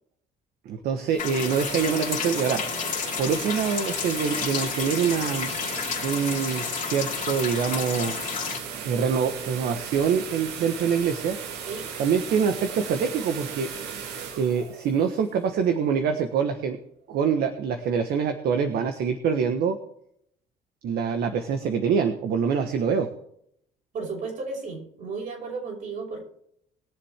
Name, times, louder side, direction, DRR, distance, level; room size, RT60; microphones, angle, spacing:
voice 1, 0.6-2.6 3.2-5.5 6.0-8.1 8.8-11.4 12.0-13.7 14.4-16.8 17.1-19.8 20.8-23.1, right 6 dB, 70° right, 6 dB, 1.4 m, -25 dB
sound 1, 0.9-15.9, right 7 dB, 85° right, 1.9 m, -37 dB
sound 2, 1.2-8.6, left 8 dB, 50° left, 2.5 m, -31 dB
voice 2, 23.9-26.2, right 4 dB, 55° right, 0 dB, 6.1 m, -34 dB
21.5 x 7.3 x 3.6 m, 0.70 s
cardioid pair, 110°, 17 cm